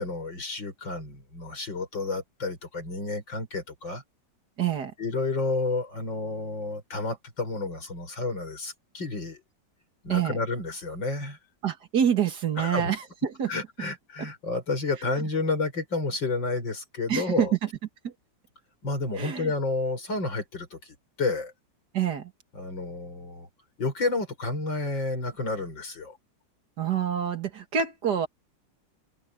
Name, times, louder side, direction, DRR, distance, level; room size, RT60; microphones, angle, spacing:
voice 1, 0.0-4.0 5.0-9.4 10.0-11.4 12.6-12.9 13.5-17.5 18.8-21.5 22.5-23.5 23.8-26.2, left 3 dB, 85° left, 6.5 m, -30 dB
voice 2, 4.6-4.9 10.1-10.4 11.6-13.5 17.1-17.7 18.0-18.1 19.2-19.5 21.9-22.3 26.8-28.3, right 8 dB, 60° right, 2.4 m, -27 dB
open air
omnidirectional pair, 2.0 m